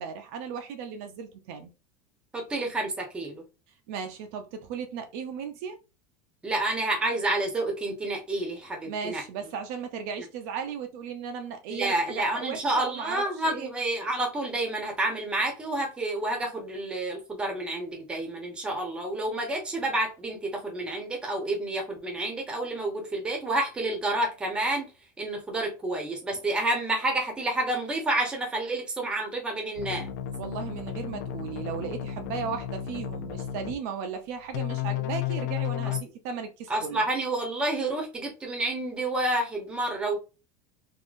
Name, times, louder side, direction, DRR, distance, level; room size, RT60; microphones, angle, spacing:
voice 1, 0.0-1.7 3.9-5.8 8.8-13.7 30.4-37.0, right 6 dB, 60° right, 0.6 m, -36 dB
voice 2, 2.3-3.4 6.4-9.2 11.7-24.9 25.2-30.1 36.7-40.2, right 2 dB, 10° right, 0.9 m, -29 dB
sound 1, 29.8-33.7 34.5-36.0, left 11 dB, 85° left, 0.5 m, -33 dB
3.7 x 2.7 x 2.5 m
supercardioid pair, 160°, 9 cm